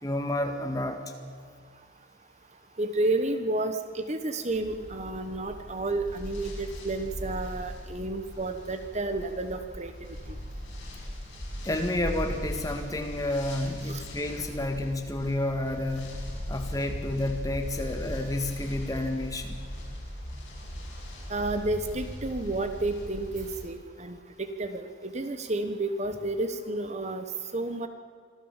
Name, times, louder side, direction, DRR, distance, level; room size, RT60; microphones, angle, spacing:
voice 1, 0.0-1.0 11.6-19.6, left 1 dB, 15° left, 5 dB, 1.8 m, -30 dB
voice 2, 2.8-9.9 10.3-10.4 13.9-14.0 21.3-27.3 27.5-27.9, right 2 dB, 35° right, 8 dB, 1.1 m, -31 dB
sound 1, 4.5-23.6, equal, 65° left, 6.8 m, -39 dB
25.5 x 14.0 x 7.4 m, 2.1 s
head